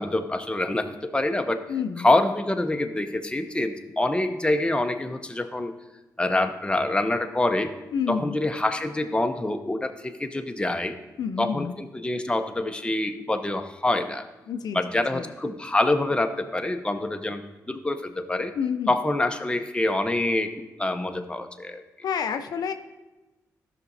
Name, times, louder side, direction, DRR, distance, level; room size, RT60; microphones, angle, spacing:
voice 1, 0.0-1.6 2.0-5.7 6.2-7.7 8.1-11.0 11.4-14.3 14.7-17.4 17.7-18.5 18.9-20.5 20.8-21.8, left 2 dB, 15° left, 6 dB, 0.8 m, -26 dB
voice 2, 1.7-2.1 7.9-8.4 11.2-11.8 14.5-14.8 15.1-15.3 18.5-19.0 22.0-22.7, left 7 dB, 70° left, 8 dB, 0.4 m, -29 dB
12.5 x 5.9 x 2.7 m, 1.1 s
supercardioid pair, 50°, 7 cm